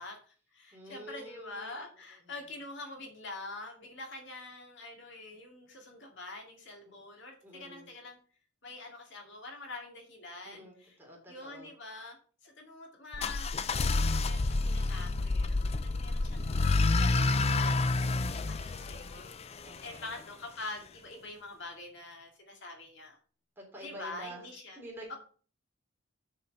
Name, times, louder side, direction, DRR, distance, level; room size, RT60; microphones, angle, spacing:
voice 1, 0.0-8.2 8.6-10.9 11.3-12.2 12.4-19.3 19.8-23.2 23.8-24.8 25.1-25.2, left 2 dB, 60° left, 2 dB, 2.3 m, -45 dB
voice 2, 0.7-1.8 2.2-2.3 6.8-6.9 7.4-7.9 10.4-11.7 19.6-20.2 23.6-24.5 24.7-25.2, right 1 dB, 10° right, -2 dB, 3.1 m, -48 dB
sound 1, 13.1-20.0, left 3 dB, 30° left, 0.4 m, -29 dB
6.9 x 5.7 x 6.6 m, 0.42 s
head